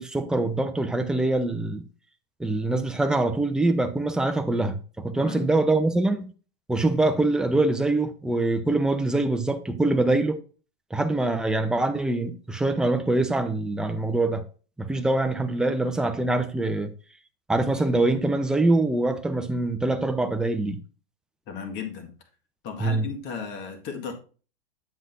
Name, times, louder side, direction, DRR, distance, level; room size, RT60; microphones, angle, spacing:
voice 1, 0.0-1.8 2.4-6.3 6.7-10.4 10.9-14.4 14.8-16.9 17.5-20.8 22.8-23.1, right 2 dB, ahead, 0.7 m, -24 dB
voice 2, 21.5-22.1 22.6-24.1, left 6 dB, 40° left, 1.8 m, -35 dB
8.1 x 7.3 x 2.7 m
hypercardioid pair, 110°, 29 cm